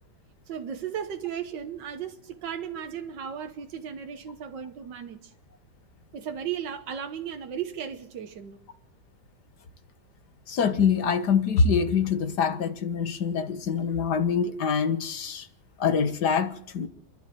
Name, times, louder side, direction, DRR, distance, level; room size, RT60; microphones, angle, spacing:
voice 1, 0.5-5.3 6.1-8.6, right 8 dB, 85° right, 1.8 m, -35 dB
voice 2, 10.5-15.5 15.8-16.9, left 6 dB, 70° left, 2.1 m, -25 dB
28.0 x 11.5 x 9.1 m
omnidirectional pair, 1.9 m